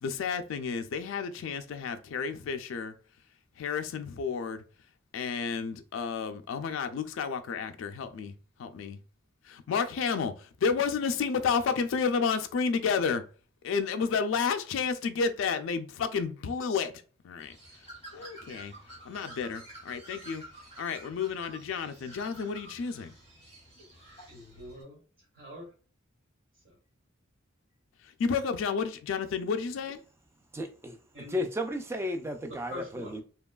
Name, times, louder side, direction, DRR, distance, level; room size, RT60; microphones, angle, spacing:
voice 1, 0.0-2.9 3.6-4.6 5.1-8.3 8.6-9.0 9.7-13.2 13.6-16.9 17.2-17.5 18.1-18.7 19.1-20.4 20.8-23.1 28.2-30.0, left 5 dB, 75° left, 0.3 m, -31 dB
Bird, 17.4-24.8, right 1 dB, 30° right, 1.0 m, -50 dB
voice 2, 24.2-25.7 26.5-26.8 31.1-31.4 32.5-33.2, left 1 dB, 90° right, 1.4 m, -45 dB
voice 3, 30.5-31.0 31.3-33.2, left 1 dB, 15° right, 0.3 m, -33 dB
2.9 x 2.2 x 2.2 m
head